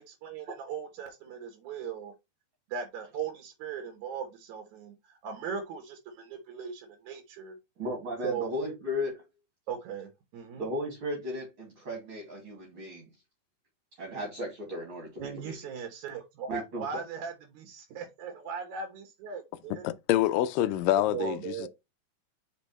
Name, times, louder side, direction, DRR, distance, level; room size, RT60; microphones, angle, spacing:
voice 1, 0.0-2.1 2.7-7.6 8.2-8.8 9.7-10.7 15.2-19.8 21.1-21.7, right 7 dB, 65° right, 2.3 m, -38 dB
voice 2, 7.8-9.1 10.6-13.0 14.0-15.5 16.5-16.8, left 1 dB, 40° right, 2.7 m, -35 dB
voice 3, 19.8-21.7, left 13 dB, 80° left, 2.0 m, -26 dB
5.3 x 5.3 x 4.2 m
omnidirectional pair, 4.3 m